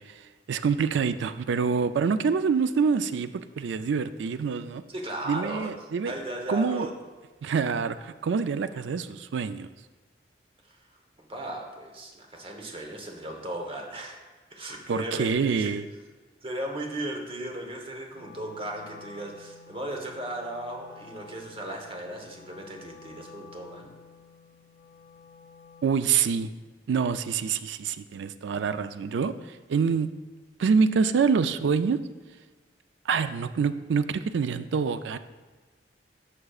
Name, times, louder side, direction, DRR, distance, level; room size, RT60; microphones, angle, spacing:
voice 1, 0.1-4.8 5.3-6.1 6.5-6.9 7.4-9.7 14.9-15.9 25.8-26.5 26.9-30.1 30.6-32.0 33.1-35.2, right 5 dB, 85° right, 12 dB, 0.4 m, -26 dB
voice 2, 4.9-5.7 6.0-6.9 10.7-10.9 11.2-14.2 14.5-15.7 16.4-23.9, right 1 dB, 30° right, 2 dB, 1.0 m, -36 dB
Wind instrument woodwind instrument, 18.1-26.1, left 5 dB, 55° left, 0.7 m, -50 dB
11.5 x 6.0 x 2.4 m, 1.3 s
head